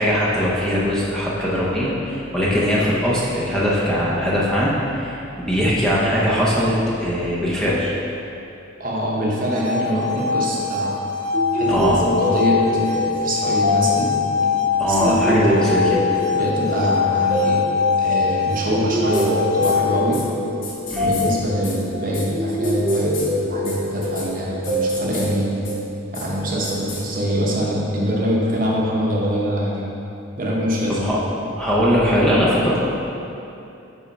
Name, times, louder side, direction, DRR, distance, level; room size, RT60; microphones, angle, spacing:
voice 1, 0.0-6.7 7.0-7.9 11.7-12.0 14.8-15.8 20.9-21.1 30.9-31.2 31.6-33.0, equal, 5° left, -7 dB, 0.7 m, -20 dB
voice 2, 8.8-11.0 11.5-14.1 14.9-15.6 16.3-17.6 18.0-20.2 21.0-25.5 26.1-29.9 30.4-31.1, equal, 45° right, -4 dB, 1.0 m, -24 dB
sound 1, 9.3-20.3, left 6 dB, 60° right, 0.4 m, -23 dB
sound 2, 11.3-26.1, equal, 15° right, 1.2 m, -25 dB
sound 3, 19.1-19.3 19.6-19.7 20.1-20.2 20.6-21.2 21.6-21.7 22.1-22.2 22.6-23.3 23.6-23.7 24.0-24.3 24.6-25.3 25.6-25.7 26.1-26.2 26.6-27.0, left 4 dB, 75° left, 1.2 m, -33 dB
5.5 x 4.3 x 5.3 m, 2.8 s
head